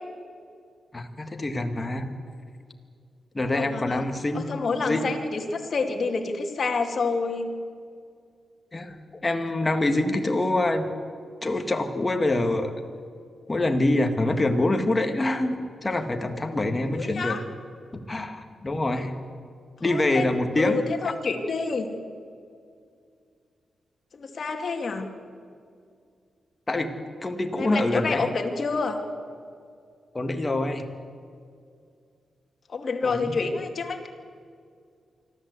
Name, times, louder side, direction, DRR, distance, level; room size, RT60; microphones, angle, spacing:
voice 1, 0.9-2.1 3.3-4.5 4.9-5.1 8.7-10.9 11.4-12.7 13.5-17.4 18.1-19.1 19.8-21.1 26.7-26.9 27.2-28.2 30.1-30.9 33.0-33.4, left 2 dB, 20° left, 5 dB, 1.8 m, -25 dB
voice 2, 3.5-4.1 4.3-7.5 16.9-17.4 19.8-20.3 20.6-22.0 24.1-25.1 27.5-29.0 32.7-34.1, left 4 dB, 50° left, 3 dB, 2.3 m, -28 dB
25.0 x 13.5 x 8.2 m, 2.3 s
wide cardioid pair, 115°, 0 cm